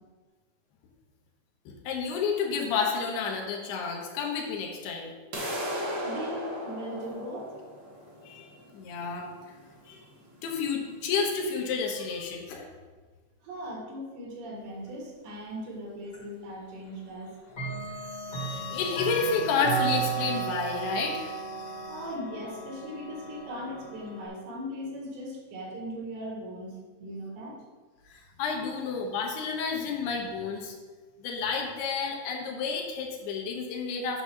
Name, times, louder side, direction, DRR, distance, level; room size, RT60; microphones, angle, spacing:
voice 1, 1.7-5.1 8.3-8.5 8.7-9.3 9.9-10.0 10.4-12.7 18.2-22.0 28.1-30.7 31.2-34.2, left 5 dB, 75° left, 1 dB, 3.0 m, -31 dB
sound 1, 5.3-11.3, equal, 60° right, 1.2 m, -37 dB
voice 2, 6.0-7.5 13.4-17.4 21.9-27.6, equal, 85° right, -2 dB, 4.0 m, -39 dB
Clock, 16.1-16.2 17.5-24.3, right 4 dB, 30° left, 1.6 m, -34 dB
9.2 x 4.1 x 6.1 m, 1.4 s
omnidirectional pair, 4.8 m